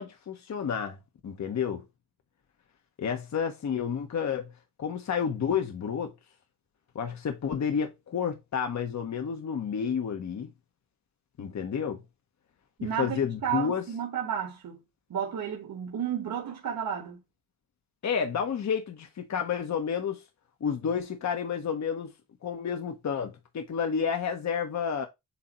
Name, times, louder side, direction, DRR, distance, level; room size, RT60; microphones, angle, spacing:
voice 1, 0.0-1.8 3.0-4.5 4.8-6.1 6.9-10.5 11.4-12.0 12.8-13.8 18.0-20.2 20.6-22.1 22.4-25.1, left 7 dB, 55° left, 0.9 m, -30 dB
voice 2, 12.8-14.8 15.1-17.2, right 8 dB, 75° right, 1.6 m, -32 dB
8.3 x 2.8 x 4.2 m
wide cardioid pair, 145°, 34 cm